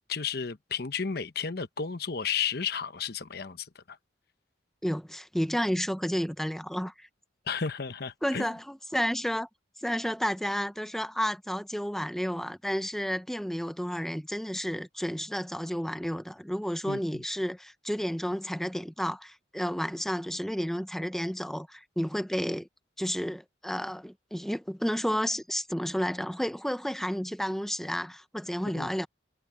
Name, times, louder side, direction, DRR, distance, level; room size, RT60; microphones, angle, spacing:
voice 1, 0.1-4.0 7.5-8.5 16.9-17.0 28.7-28.9, left 6 dB, 60° left, 1.0 m, -33 dB
voice 2, 4.8-7.1 8.2-9.5 9.8-22.7 23.0-29.1, equal, ahead, 0.8 m, -31 dB
head